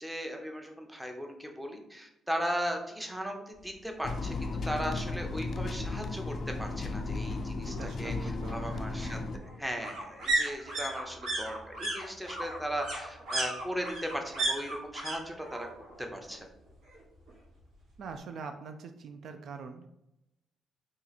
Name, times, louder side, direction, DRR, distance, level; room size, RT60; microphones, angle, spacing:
voice 1, 0.0-15.7 16.0-16.5, equal, 5° right, 3 dB, 0.6 m, -37 dB
sound 1, 4.0-9.4, left 3 dB, 45° left, 0.3 m, -35 dB
sound 2, 4.3-4.4 4.7-4.8 5.1-6.1 7.4-15.2 15.4-16.0 16.3-17.3 17.6-17.7, right 2 dB, 85° right, 1.2 m, -35 dB
voice 2, 7.5-8.8 18.0-19.9, right 5 dB, 65° right, 7 dB, 0.3 m, -43 dB
2.9 x 2.4 x 4.0 m, 0.87 s
cardioid pair, 90°, 0 cm